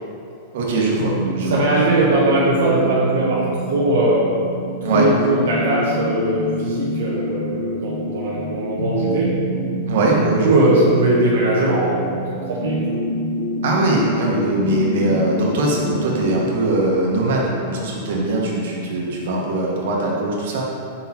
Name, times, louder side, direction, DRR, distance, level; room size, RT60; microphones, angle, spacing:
voice 1, 0.5-1.6 4.8-5.1 9.9-10.7 13.6-20.6, right 2 dB, 70° right, -3 dB, 1.4 m, -21 dB
sound 1, 1.0-16.5, equal, 85° left, 0.7 m, -26 dB
voice 2, 1.5-4.2 4.9-9.3 10.4-12.8, right 2 dB, 90° right, -6 dB, 1.0 m, -20 dB
5.6 x 4.3 x 4.3 m, 2.5 s
supercardioid pair, 150°, 0 cm